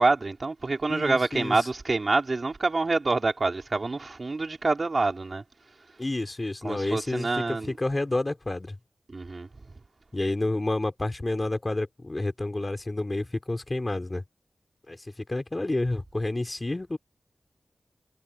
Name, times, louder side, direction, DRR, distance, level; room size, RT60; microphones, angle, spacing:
voice 1, 0.0-5.4 6.6-7.8 9.1-9.5, right 3 dB, 50° right, 3.7 m, -26 dB
voice 2, 0.9-1.6 6.0-8.8 10.1-14.2 14.9-17.0, left 2 dB, 30° left, 3.4 m, -29 dB
cardioid pair, 60°, 0 cm